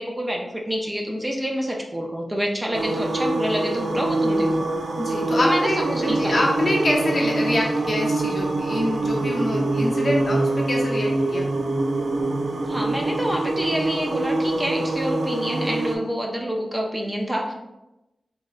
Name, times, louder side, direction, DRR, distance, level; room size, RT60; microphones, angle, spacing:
voice 1, 0.0-4.7 5.4-6.4 12.7-17.5, equal, 15° right, 0 dB, 0.4 m, -27 dB
sound 1, 2.7-16.0, right 2 dB, 85° right, 0.4 m, -24 dB
voice 2, 5.0-11.5, left 1 dB, 50° left, -1 dB, 0.7 m, -25 dB
3.5 x 3.0 x 2.4 m, 0.94 s
wide cardioid pair, 105°, 0 cm